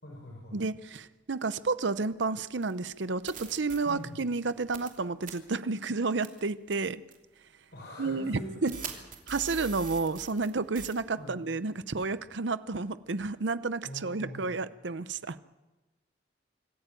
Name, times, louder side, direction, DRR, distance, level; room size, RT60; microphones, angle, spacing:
voice 1, 0.0-0.6 3.9-4.2 7.7-9.0 11.2-11.4 13.8-14.5, equal, 65° left, -1 dB, 5.5 m, -44 dB
voice 2, 0.5-7.0 8.0-8.8 9.3-15.4, right 3 dB, 75° right, 14 dB, 0.8 m, -31 dB
sound 1, 2.6-2.7 3.3-3.8 4.7-5.0 5.2-5.3 6.2-6.4 7.1-7.2 8.7-10.5 10.7-10.9, right 6 dB, 45° right, 2.8 m, -41 dB
26.0 x 14.5 x 9.0 m, 1.1 s
head